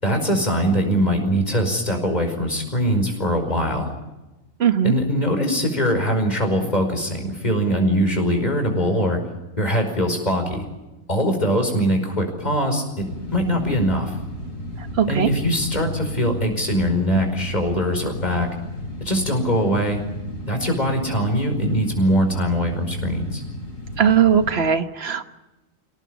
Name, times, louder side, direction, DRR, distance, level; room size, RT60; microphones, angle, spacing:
voice 1, 0.0-3.9 4.8-9.2 9.6-10.6 11.1-14.2 15.1-18.5 19.0-20.0 20.5-23.4, equal, 30° left, 4 dB, 5.2 m, -22 dB
voice 2, 4.6-4.9 14.8-15.3 24.0-25.2, right 8 dB, 50° right, 9 dB, 1.5 m, -19 dB
sound 1, 13.0-24.5, left 1 dB, 65° left, 5.7 m, -34 dB
26.0 x 18.0 x 8.2 m, 1.0 s
omnidirectional pair, 1.4 m